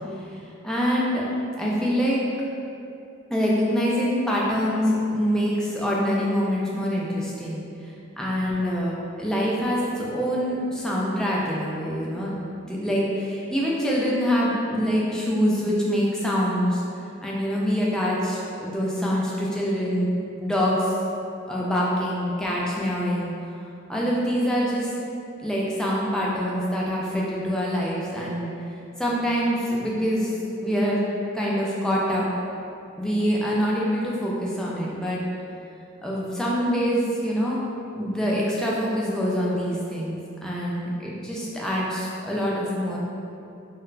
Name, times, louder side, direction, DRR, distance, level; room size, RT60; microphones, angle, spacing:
voice 1, 0.6-1.2 1.6-2.2 3.3-7.6 8.2-16.8 17.2-20.1 20.4-20.9 21.5-23.3 23.9-24.9 25.4-28.5 29.0-30.3 30.6-31.0 31.3-32.3 33.0-35.2 36.0-37.6 37.9-43.0, equal, 5° left, -5 dB, 0.3 m, -25 dB
2.2 x 2.1 x 3.8 m, 2.7 s
head